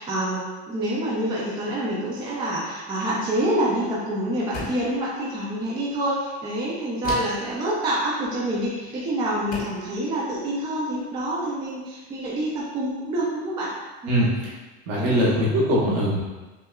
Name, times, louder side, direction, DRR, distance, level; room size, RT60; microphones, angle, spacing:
voice 1, 0.0-13.7 14.0-14.3 15.0-15.4, right 1 dB, 15° right, -5 dB, 0.3 m, -27 dB
sound 1, 4.5-5.0 7.0-7.5 8.8-9.0 9.5-9.9, left 2 dB, 25° left, 0.7 m, -34 dB
voice 2, 14.1-14.5 14.9-16.2, equal, 50° right, -5 dB, 1.1 m, -22 dB
5.6 x 2.3 x 2.3 m, 1.2 s
cardioid pair, 160°, 34 cm